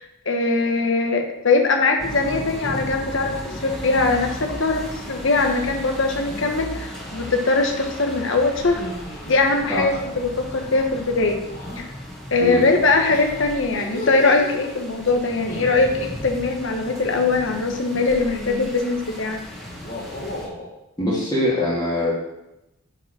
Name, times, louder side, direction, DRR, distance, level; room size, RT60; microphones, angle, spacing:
voice 1, 0.0-4.8 5.1-8.8 9.3-11.4 11.8-11.9 12.3-19.4, left 3 dB, 60° left, 3 dB, 1.1 m, -21 dB
sound 1, 2.0-20.5, equal, ahead, 1.7 m, -36 dB
sound 2, 2.4-2.7 3.1-3.6 5.3-6.6 8.6-10.0 11.5-11.8 13.0-14.6 15.3-16.1 17.6-18.7 19.7-20.7, left 1 dB, 40° left, 2.0 m, -36 dB
voice 2, 21.0-22.1, left 1 dB, 20° left, -8 dB, 2.6 m, -22 dB
10.0 x 5.1 x 6.1 m, 0.93 s
head